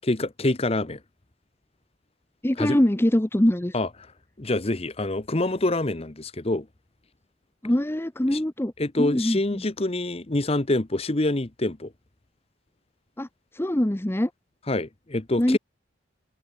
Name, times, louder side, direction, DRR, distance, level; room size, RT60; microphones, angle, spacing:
voice 1, 0.1-1.0 2.6-2.8 3.7-3.9 4.4-6.7 8.3-8.4 8.8-11.9 14.7-15.6, left 2 dB, 30° left, 1.0 m, -26 dB
voice 2, 2.4-3.8 7.6-8.7 9.0-9.6 13.2-13.3 13.5-14.3 15.4-15.6, left 1 dB, 10° left, 0.7 m, -23 dB
head